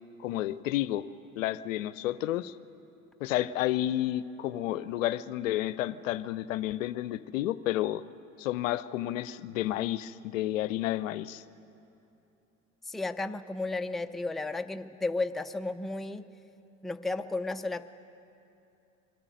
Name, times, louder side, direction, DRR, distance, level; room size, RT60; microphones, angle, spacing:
voice 1, 0.2-1.1 1.4-2.5 3.2-8.0 8.4-11.4, left 14 dB, 70° left, 16 dB, 0.6 m, -31 dB
voice 2, 12.9-16.3 16.8-17.8, left 3 dB, ahead, 8 dB, 0.5 m, -33 dB
23.0 x 13.5 x 9.1 m, 2.7 s
figure-of-eight pair, 70°, 40 cm